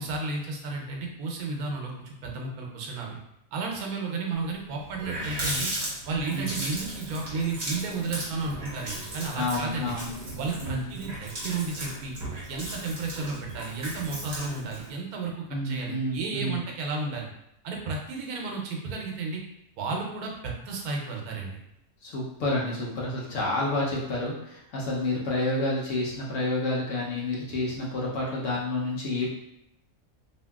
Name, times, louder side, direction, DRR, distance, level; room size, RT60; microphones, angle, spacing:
voice 1, 0.0-3.2 3.5-5.7 6.1-9.9 10.4-12.1 12.5-17.3 17.6-19.4 19.8-21.6, right 3 dB, 80° right, 0 dB, 1.1 m, -33 dB
Water tap faucet, 4.5-4.6 4.8-14.9, right 1 dB, 35° right, 0.9 m, -36 dB
voice 2, 6.3-6.6 9.4-10.1 10.6-10.8 15.5-16.6 22.0-29.3, left 2 dB, 65° left, -4 dB, 0.9 m, -29 dB
2.7 x 2.6 x 2.2 m, 0.79 s
omnidirectional pair, 1.6 m